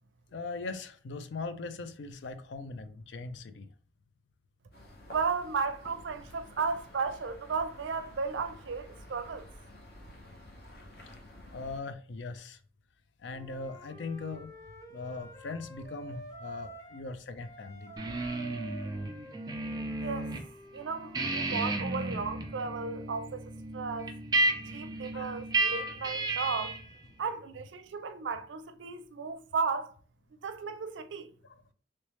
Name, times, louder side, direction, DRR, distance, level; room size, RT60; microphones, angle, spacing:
voice 1, 0.3-3.7 10.7-10.9 11.5-12.6 13.2-14.5 14.9-18.1 25.1-25.4 31.4-31.6, left 3 dB, 85° left, 0.4 m, -40 dB
sound 1, 4.7-11.8, left 1 dB, 55° left, 0.8 m, -51 dB
voice 2, 5.1-9.5 20.0-20.3 20.7-24.1 24.7-26.8 27.2-29.9 30.4-31.3, right 5 dB, 90° right, 0.4 m, -34 dB
Wind instrument woodwind instrument, 13.3-17.1 17.4-21.2, right 2 dB, 15° left, 0.7 m, -49 dB
sound 2, 18.0-20.4 20.8-26.9, right 2 dB, 20° right, 0.4 m, -33 dB
3.2 x 3.1 x 3.1 m
head